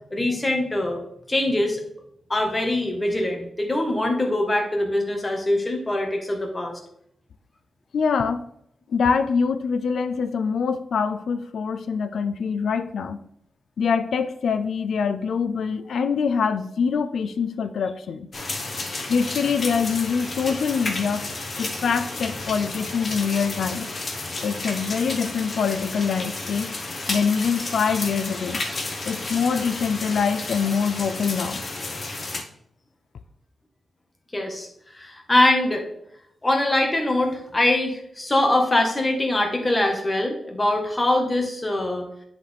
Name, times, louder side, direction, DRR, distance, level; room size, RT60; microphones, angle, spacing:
voice 1, 0.1-1.0 1.3-1.8 2.3-6.8 34.3-34.7 34.9-35.9 36.4-42.0, left 1 dB, 15° left, 2 dB, 1.3 m, -23 dB
voice 2, 7.9-8.4 8.9-13.2 13.8-18.3 19.1-21.3 21.6-23.9 24.4-26.7 27.1-28.6 29.1-31.6, left 6 dB, 75° left, 9 dB, 0.4 m, -24 dB
sound 1, 18.3-32.4, left 2 dB, 40° left, 1.2 m, -32 dB
10.0 x 4.2 x 3.4 m, 0.72 s
wide cardioid pair, 135°, 0 cm